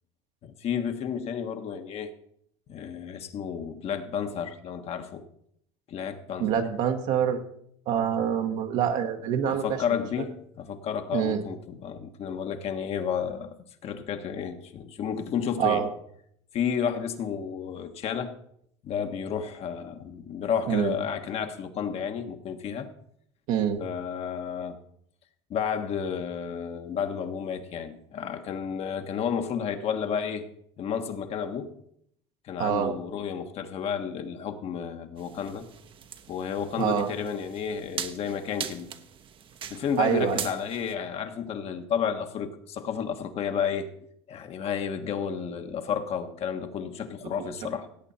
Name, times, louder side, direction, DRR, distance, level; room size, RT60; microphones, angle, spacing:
voice 1, 0.4-2.1 2.7-5.2 5.9-6.6 7.9-8.1 9.4-13.5 13.8-15.9 16.5-18.3 18.8-22.9 23.8-24.8 25.5-30.5 30.8-31.8 32.4-35.7 36.3-39.0 39.7-43.9 44.3-47.9, left 7 dB, 45° left, 7 dB, 1.4 m, -31 dB
voice 2, 6.4-7.4 7.9-9.6 11.1-11.4 15.6-15.9 20.7-20.9 23.5-23.8 32.6-32.9 36.8-37.1 40.0-40.4 47.4-47.5, right 9 dB, 65° right, 3 dB, 1.3 m, -25 dB
sound 1, 35.2-41.0, right 8 dB, 40° right, 1.0 m, -40 dB
17.0 x 8.3 x 4.3 m, 0.70 s
supercardioid pair, 100°, 14 cm